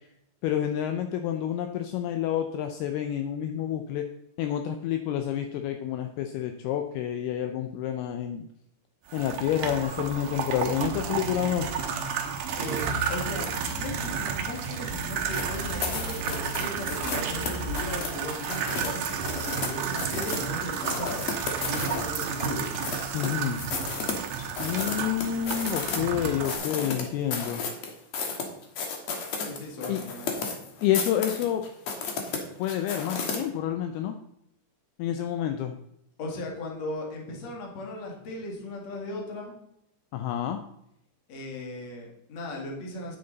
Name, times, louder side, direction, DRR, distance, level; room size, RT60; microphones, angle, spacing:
voice 1, 0.4-4.0 4.4-8.5 9.1-11.7 23.1-23.6 24.6-27.6 29.9-30.0 30.8-31.6 32.6-34.2 35.0-35.8 40.1-40.6, left 10 dB, 85° left, 6 dB, 2.3 m, -29 dB
sound 1, 9.1-26.6, right 7 dB, 75° right, 1.9 m, -32 dB
sound 2, 9.8-17.9, left 1 dB, 40° right, 1.2 m, -39 dB
voice 2, 12.5-21.3 21.7-22.7 29.4-30.5 36.2-39.5 41.3-43.2, left 1 dB, 50° left, 0 dB, 2.5 m, -37 dB
sound 3, 15.3-19.7 20.0-20.5 20.9-23.3 23.6-26.0 26.2-33.4, left 5 dB, 65° left, 1.7 m, -33 dB
9.5 x 8.7 x 4.0 m, 0.77 s
omnidirectional pair, 5.2 m